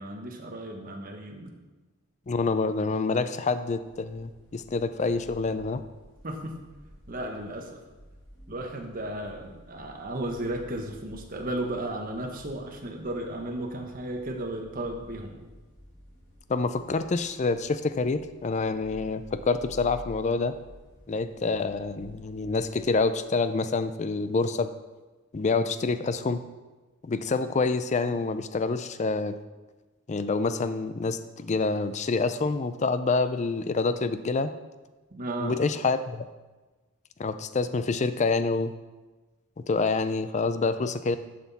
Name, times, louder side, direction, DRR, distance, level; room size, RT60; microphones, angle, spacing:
voice 1, 0.0-1.5 6.2-6.6 7.1-7.8 8.5-15.4 35.1-35.6, right 1 dB, 40° right, 3 dB, 1.2 m, -34 dB
voice 2, 2.3-5.8 16.5-20.5 21.1-24.7 25.3-26.4 27.0-29.3 30.1-34.5 35.4-36.2 37.2-38.7 39.6-41.2, left 4 dB, 35° left, 11 dB, 0.4 m, -27 dB
sound 1, 3.8-23.0, equal, 75° left, 2.1 m, -51 dB
11.5 x 5.9 x 4.1 m, 1.2 s
head